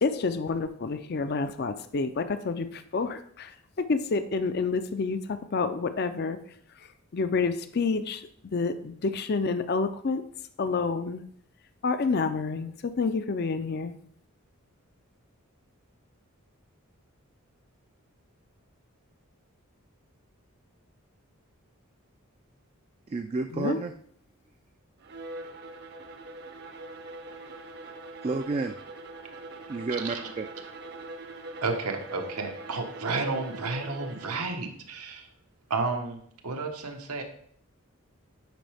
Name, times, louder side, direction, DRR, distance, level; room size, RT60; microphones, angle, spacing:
voice 1, 0.0-6.4 7.1-8.2 8.5-10.2 10.6-11.2 11.8-13.9 23.5-23.8, left 4 dB, 45° left, 10 dB, 0.4 m, -28 dB
voice 2, 23.1-23.9 28.2-28.8 29.7-30.5, right 3 dB, 30° right, 6 dB, 0.3 m, -30 dB
Bowed string instrument, 25.0-34.5, right 2 dB, 50° right, 0.7 m, -43 dB
voice 3, 30.0-30.3 31.6-35.3 35.7-36.2 36.4-37.2, right 3 dB, 90° right, 3 dB, 1.2 m, -31 dB
9.1 x 5.5 x 3.5 m, 0.63 s
head